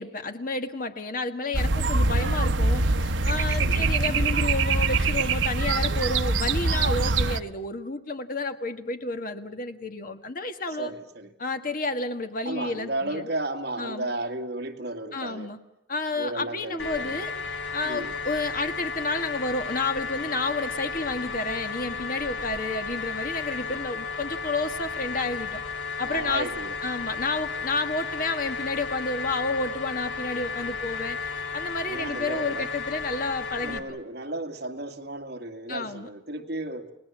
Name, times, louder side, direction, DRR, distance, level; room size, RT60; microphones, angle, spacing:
voice 1, 0.0-10.9 11.4-13.3 13.8-14.1 15.1-15.6 15.9-17.3 17.7-25.6 26.0-26.5 26.8-33.8 35.7-36.1, left 3 dB, 45° left, 7 dB, 1.7 m, -31 dB
sound 1, 1.5-7.4, right 3 dB, 75° right, 1.0 m, -23 dB
voice 2, 10.8-11.3 12.5-15.5 16.2-17.2 17.8-18.1 26.0-26.7 31.9-32.7 33.6-36.9, right 2 dB, 55° right, 4 dB, 2.2 m, -34 dB
sound 2, 16.8-33.8, left 5 dB, 85° left, 2.6 m, -34 dB
30.0 x 19.5 x 7.4 m, 0.85 s
head